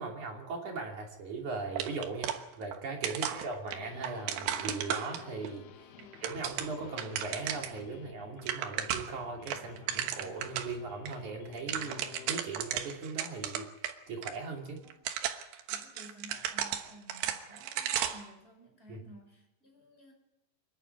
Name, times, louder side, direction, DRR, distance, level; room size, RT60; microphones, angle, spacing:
voice 1, 0.0-5.9 6.2-13.7 14.1-14.8 18.9-19.0, right 3 dB, 50° right, 1 dB, 3.9 m, -39 dB
sound 1, 1.8-2.8 3.0-5.5 6.0-7.8 8.1-8.2 8.4-9.2 9.5-10.7 11.1-11.2 11.5-13.9 14.2-14.3 14.9-18.3, right 10 dB, 85° right, 3.5 m, -35 dB
sound 2, 3.7-12.4, left 9 dB, 85° left, 1.7 m, -52 dB
voice 2, 15.7-20.1, right 1 dB, 15° left, 1 dB, 5.3 m, -55 dB
26.5 x 11.5 x 9.4 m, 0.95 s
omnidirectional pair, 4.9 m